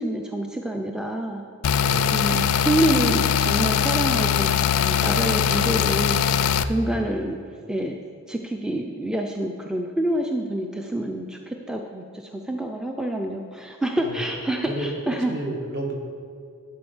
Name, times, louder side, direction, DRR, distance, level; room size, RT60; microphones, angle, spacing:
voice 1, 0.0-1.4 2.1-6.2 6.6-7.4 7.7-8.0 8.3-15.3, right 1 dB, 5° right, 2 dB, 0.4 m, -27 dB
sound 1, 1.6-6.6, left 8 dB, 85° left, 0.4 m, -21 dB
voice 2, 1.8-2.2 6.9-7.1 14.0-14.3 14.7-15.9, right 1 dB, 50° right, 0 dB, 1.6 m, -32 dB
11.0 x 4.5 x 7.0 m, 2.4 s
head